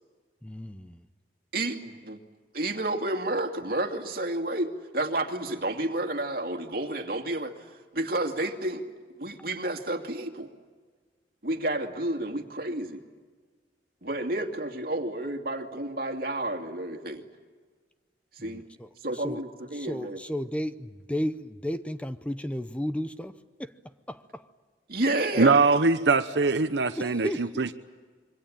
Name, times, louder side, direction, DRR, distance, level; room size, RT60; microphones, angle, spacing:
voice 1, 0.4-1.1 9.4-9.5 18.4-19.4 19.7-24.5 27.0-27.7, equal, 10° left, 11 dB, 0.7 m, -34 dB
voice 2, 1.5-2.2 2.5-7.5 7.9-8.8 9.2-10.5 11.4-13.0 14.0-17.2 18.3-18.6 19.0-20.2 24.9-25.6, right 1 dB, 60° right, 5 dB, 2.6 m, -30 dB
voice 3, 25.4-27.3 27.6-27.7, right 4 dB, 80° right, 9 dB, 0.9 m, -22 dB
26.5 x 23.5 x 8.9 m, 1.5 s
head